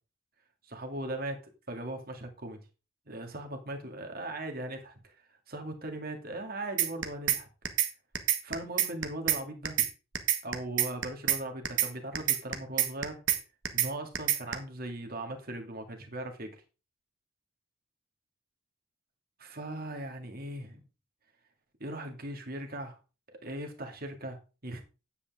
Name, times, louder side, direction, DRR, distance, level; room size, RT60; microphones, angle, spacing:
voice 1, 0.6-1.4 1.7-2.6 3.1-5.1 5.5-7.5 8.4-9.9 10.4-13.2 13.7-16.6 19.4-20.8 21.8-23.0 23.4-24.8, right 1 dB, 50° right, 2.2 m, -39 dB
sound 1, 6.8-7.4 7.7-7.9 8.2-9.4 9.7-9.9 10.2-11.4 11.7-11.9 12.2-13.4 13.7-13.9 14.2-14.5, right 11 dB, 65° right, 1.5 m, -26 dB
10.0 x 8.4 x 3.6 m
head